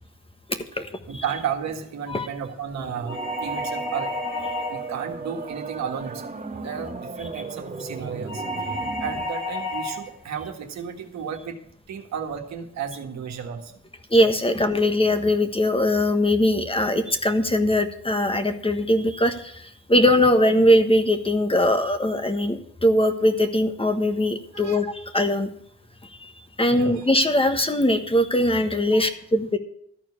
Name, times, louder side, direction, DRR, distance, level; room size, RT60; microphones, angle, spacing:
voice 1, 0.5-0.8 1.1-1.2 2.1-2.3 14.1-25.5 26.2-26.3 26.6-29.6, left 1 dB, 20° left, 7 dB, 1.3 m, -21 dB
voice 2, 1.1-4.1 4.7-6.3 6.6-8.4 9.0-11.6 11.9-13.7 24.5-24.8 26.6-27.1 28.9-29.0, right 7 dB, 65° right, 4 dB, 1.7 m, -33 dB
sound 1, 2.7-9.2, right 4 dB, 25° right, 1.3 m, -36 dB
sound 2, 3.1-5.0 8.3-10.1, left 1 dB, 85° left, 1.8 m, -30 dB
13.5 x 4.6 x 8.4 m, 0.68 s
supercardioid pair, 65°, 29 cm